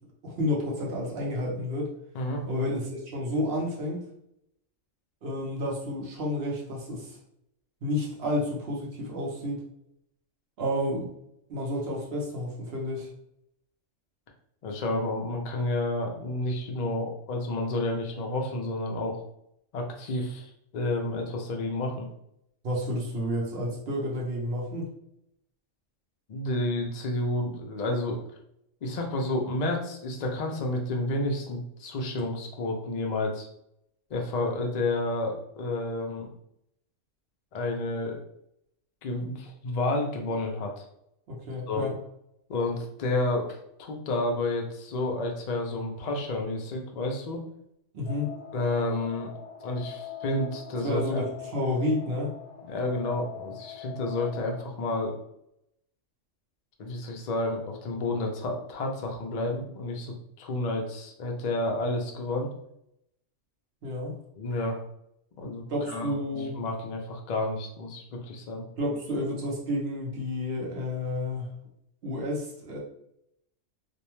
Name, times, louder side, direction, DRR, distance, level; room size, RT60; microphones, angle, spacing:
voice 1, 0.2-1.9 2.5-4.0 5.2-7.2 7.8-9.6 10.6-11.1 11.5-13.1 22.6-24.9 41.3-42.0 47.9-48.3 50.8-52.3 63.8-64.2 65.7-66.6 68.8-71.5 72.0-72.8, left 1 dB, 55° right, -2 dB, 0.9 m, -30 dB
voice 2, 14.6-19.2 19.7-22.1 26.3-28.2 28.8-33.5 34.1-36.3 37.5-38.2 39.0-40.8 41.7-41.9 42.5-47.4 48.5-49.3 49.6-51.2 52.7-55.1 56.8-62.5 64.4-64.8 65.4-66.2 66.6-68.7, left 2 dB, 80° left, 1 dB, 0.3 m, -30 dB
sound 1, 48.1-54.6, left 9 dB, 65° left, 0.7 m, -42 dB
2.6 x 2.1 x 2.9 m, 0.77 s
omnidirectional pair, 1.3 m